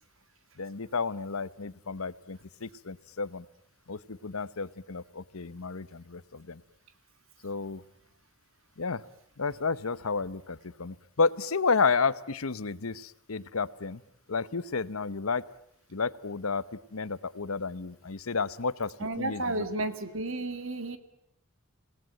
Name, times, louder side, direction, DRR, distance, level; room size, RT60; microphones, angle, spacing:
voice 1, 0.6-3.4 3.9-6.6 7.4-7.8 8.8-9.0 9.4-14.0 14.3-15.4 15.9-16.6 16.9-19.4, left 4 dB, 85° left, 17 dB, 1.0 m, -31 dB
voice 2, 19.0-21.0, right 2 dB, 70° right, 10 dB, 2.0 m, -32 dB
28.0 x 18.5 x 9.1 m, 0.73 s
head